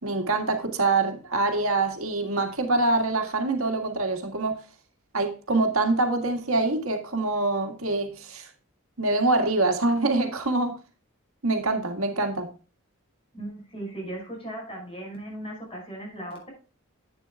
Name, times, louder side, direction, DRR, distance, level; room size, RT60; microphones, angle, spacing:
voice 1, 0.0-4.6 5.1-8.5 9.0-10.8 11.4-12.5, right 2 dB, 80° right, 1.8 m, -25 dB
voice 2, 13.3-16.5, right 1 dB, 25° left, 5.7 m, -37 dB
11.0 x 8.8 x 2.3 m
head